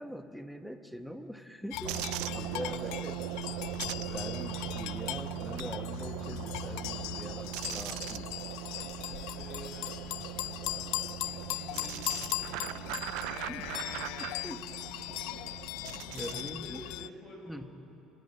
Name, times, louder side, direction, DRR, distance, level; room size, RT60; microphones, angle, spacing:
voice 1, 0.0-2.0 2.3-3.3 3.8-8.6 13.5-13.7 14.2-14.7 15.1-15.2 16.1-16.8 17.5-17.8, equal, ahead, 7 dB, 1.0 m, -43 dB
sound 1, 1.7-17.1, left 17 dB, 80° left, 0.4 m, -39 dB
sound 2, 1.8-16.6, right 18 dB, 85° right, 0.4 m, -40 dB
voice 2, 2.1-2.8 4.0-4.3 5.4-5.8 8.3-12.8 15.1-15.7 16.0-17.6, left 1 dB, 35° left, -1 dB, 6.6 m, -51 dB
26.0 x 11.0 x 9.8 m, 2.8 s
cardioid pair, 135°, 0 cm